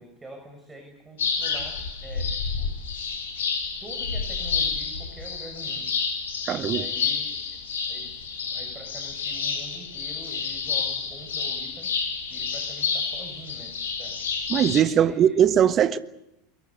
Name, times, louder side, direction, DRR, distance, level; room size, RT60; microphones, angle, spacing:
voice 1, 0.0-2.7 3.8-5.9 6.7-7.6 7.9-11.9 12.3-14.2 15.0-15.4, right 1 dB, 15° right, 6.5 m, -45 dB
sound 1, 1.2-14.8, left 5 dB, 70° left, 4.2 m, -29 dB
voice 2, 6.5-6.8 14.5-16.0, right 9 dB, 35° right, 1.3 m, -20 dB
24.0 x 22.5 x 8.3 m
figure-of-eight pair, 80°, 0 cm